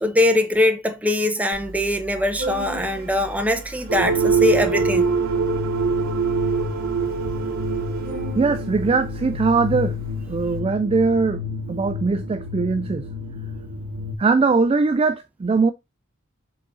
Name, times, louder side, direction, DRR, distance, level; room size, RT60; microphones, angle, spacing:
voice 1, 0.0-5.1, left 1 dB, 5° right, 0.8 m, -22 dB
Organ, 1.5-10.6, right 1 dB, 45° right, 1.5 m, -37 dB
sound 1, 3.9-14.2, right 3 dB, 85° right, 0.9 m, -25 dB
voice 2, 8.4-10.0 10.3-11.4 11.7-13.1 14.2-15.7, right 4 dB, 25° right, 0.3 m, -20 dB
6.3 x 3.8 x 4.1 m
head